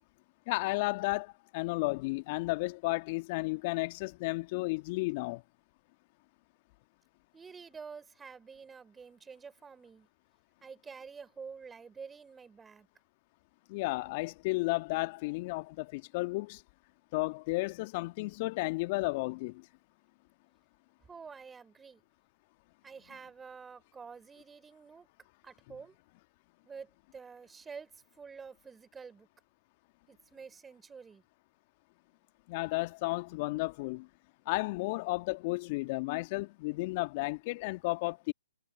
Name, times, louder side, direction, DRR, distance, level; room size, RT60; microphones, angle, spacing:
voice 1, 0.5-5.4 13.7-16.6 17.1-19.7 32.5-34.1 34.5-38.3, left 24 dB, 35° left, 1.8 m, -33 dB
voice 2, 7.3-10.1 10.6-12.9 21.1-22.0 22.8-25.1 25.4-25.9 26.6-27.9 28.2-29.3 30.1-31.2, right 5 dB, 10° right, 4.1 m, -48 dB
figure-of-eight pair, 130°, 0 cm